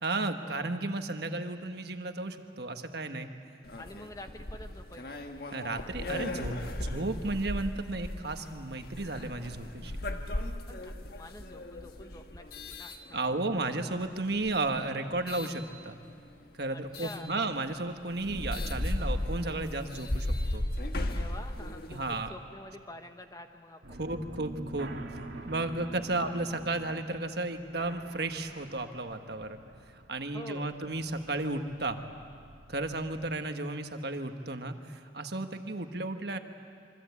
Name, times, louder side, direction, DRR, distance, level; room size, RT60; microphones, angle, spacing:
voice 1, 0.0-3.3 5.5-9.9 13.1-16.0 16.6-20.6 21.9-22.3 23.9-24.9 25.5-29.6 30.1-32.0 32.7-36.4, right 2 dB, 60° right, 6 dB, 1.4 m, -33 dB
sound 1, 3.6-13.7 14.3-15.6 16.9-17.2 17.7-17.8 18.1-22.3, left 1 dB, 55° left, 1.6 m, -36 dB
voice 2, 3.7-5.2 10.7-13.2 16.7-17.3 21.0-24.1 25.4-25.5 30.3-30.7, left 1 dB, 20° left, 6 dB, 1.1 m, -47 dB
sound 2, 23.8-33.3, right 2 dB, 90° right, 2.1 m, -47 dB
27.0 x 24.5 x 8.4 m, 2.3 s
head